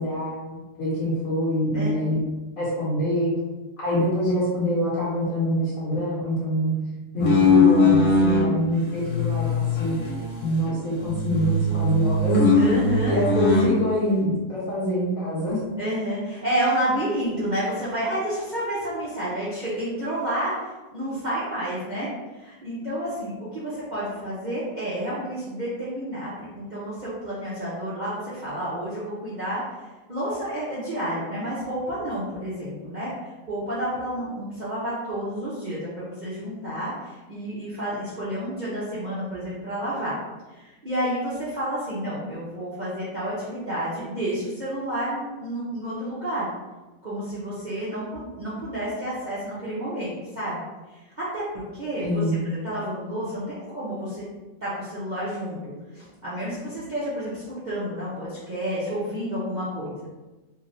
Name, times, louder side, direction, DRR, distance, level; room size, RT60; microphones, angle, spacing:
voice 1, 0.0-2.3 2.6-3.3 3.8-6.7 7.1-10.0 10.4-12.5 13.1-15.6 52.0-52.4, equal, 55° left, -9 dB, 1.2 m, -25 dB
sound 1, 7.2-8.5 9.0-10.7 11.0-13.7, left 3 dB, 75° left, 1.4 m, -21 dB
voice 2, 12.6-13.2 15.8-29.6 30.1-40.1 40.5-46.5 47.0-50.6 50.9-54.2 54.6-60.1, right 1 dB, 65° right, -10 dB, 0.4 m, -30 dB
3.1 x 2.8 x 2.6 m, 1.1 s
omnidirectional pair, 1.9 m